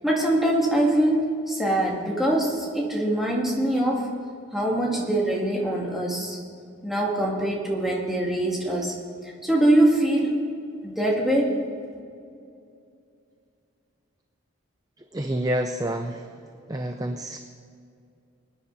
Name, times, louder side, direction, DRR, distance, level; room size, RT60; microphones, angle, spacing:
voice 1, 0.0-4.1 4.5-6.4 6.8-8.9 9.2-10.3 10.8-11.6, right 1 dB, ahead, -3 dB, 2.2 m, -23 dB
voice 2, 15.1-16.3 16.7-17.4, right 1 dB, 15° right, 6 dB, 0.5 m, -28 dB
24.0 x 9.9 x 4.1 m, 2.5 s
head